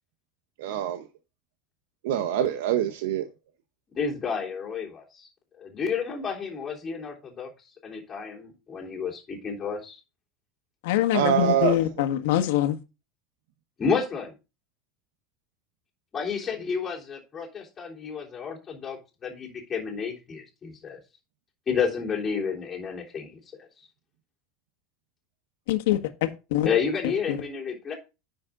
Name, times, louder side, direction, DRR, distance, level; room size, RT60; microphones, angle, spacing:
voice 1, 0.6-1.1 2.0-3.3 11.1-11.8, right 10 dB, 85° right, 0.9 m, -25 dB
voice 2, 3.9-5.3 5.6-7.5 7.8-10.0 13.8-14.3 16.1-21.0 21.7-23.4 26.6-27.9, left 6 dB, 20° left, 3.4 m, -30 dB
voice 3, 10.8-12.8 25.7-26.7 27.3-27.4, left 12 dB, 75° left, 1.5 m, -24 dB
10.0 x 6.5 x 3.7 m
supercardioid pair, 165°, 0 cm